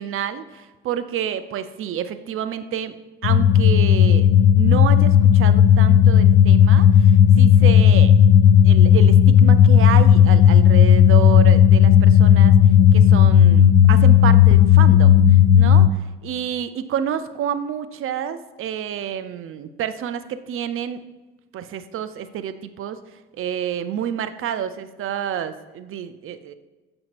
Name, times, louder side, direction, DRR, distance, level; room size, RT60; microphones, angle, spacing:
voice 1, 0.0-2.9 3.2-8.3 8.6-12.5 12.9-15.2 15.5-21.0 21.5-23.0 23.4-26.5, right 9 dB, 45° right, 11 dB, 0.5 m, -29 dB
sound 1, 3.2-15.9, left 9 dB, 65° left, 0.4 m, -13 dB
7.2 x 5.1 x 2.9 m, 1.2 s
hypercardioid pair, 50°, 31 cm